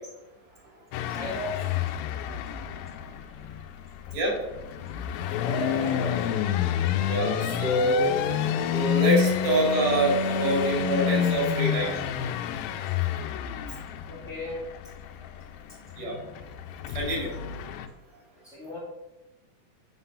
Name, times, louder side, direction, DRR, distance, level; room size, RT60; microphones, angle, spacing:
sound 1, 0.9-17.9, left 9 dB, 80° left, 2.3 m, -29 dB
voice 1, 1.1-1.6 5.4-6.2 13.7-13.8 14.1-14.6 18.4-18.8, equal, ahead, -10 dB, 1.2 m, -35 dB
voice 2, 7.0-8.1 8.7-12.0 16.0-16.2 16.9-17.3, right 1 dB, 85° right, -2 dB, 4.4 m, -25 dB
9.7 x 4.0 x 5.5 m, 1.0 s
omnidirectional pair, 4.2 m